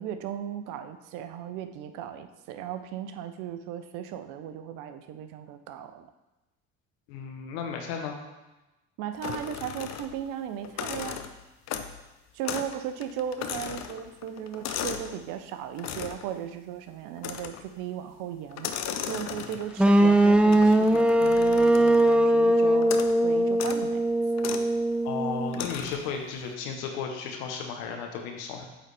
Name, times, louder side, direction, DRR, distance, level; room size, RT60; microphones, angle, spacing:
voice 1, 0.0-6.1 9.0-11.2 12.3-18.7 19.1-22.9 23.2-24.0, right 9 dB, 70° right, 9 dB, 0.6 m, -36 dB
voice 2, 7.1-8.2 25.0-28.6, left 6 dB, 75° left, 3 dB, 1.1 m, -34 dB
sound 1, 9.2-10.3 10.6-12.0 12.4-12.8 13.0-15.2 15.8-16.3 17.2-17.7 18.5-19.8 20.5-22.2 22.8-23.2 23.5-23.8 24.4-24.7 25.5-26.1, left 9 dB, 55° left, 0.6 m, -36 dB
sound 2, 19.8-25.7, right 1 dB, 5° right, 0.3 m, -21 dB
8.3 x 3.9 x 3.4 m, 1.0 s
hypercardioid pair, 65°, 33 cm